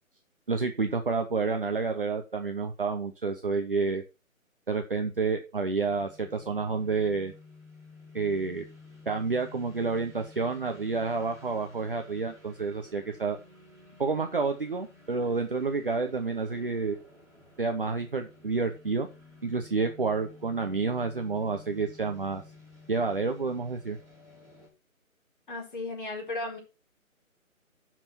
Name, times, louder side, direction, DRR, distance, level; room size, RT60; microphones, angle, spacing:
voice 1, 0.5-4.0 4.7-7.3 8.1-8.6 9.1-13.4 14.0-17.0 17.6-19.1 19.4-22.4 22.9-24.0, right 4 dB, 40° right, 5 dB, 0.9 m, -29 dB
sound 1, 5.7-24.7, left 3 dB, ahead, 3.1 m, -53 dB
voice 2, 25.5-26.6, left 2 dB, 35° left, -1 dB, 4.4 m, -35 dB
11.5 x 6.1 x 4.4 m, 0.29 s
hypercardioid pair, 175°, 42 cm